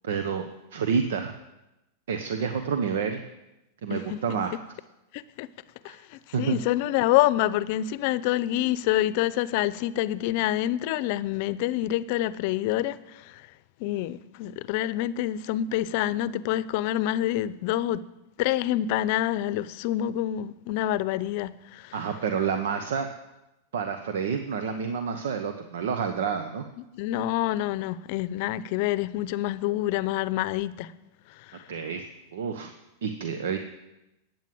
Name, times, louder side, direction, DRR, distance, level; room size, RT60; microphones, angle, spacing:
voice 1, 0.0-0.4 0.7-1.3 2.1-3.2 3.8-4.5 5.9-6.0 6.3-6.5 21.9-23.1 23.7-26.6 31.7-32.0 32.3-32.7 33.0-33.6, right 6 dB, 80° right, 1.0 m, -28 dB
voice 2, 5.1-5.5 5.8-13.5 13.8-18.0 18.4-22.1 26.8-30.9 31.3-31.7, left 13 dB, 55° left, 0.6 m, -27 dB
12.5 x 9.3 x 7.8 m
hypercardioid pair, 125°, 0 cm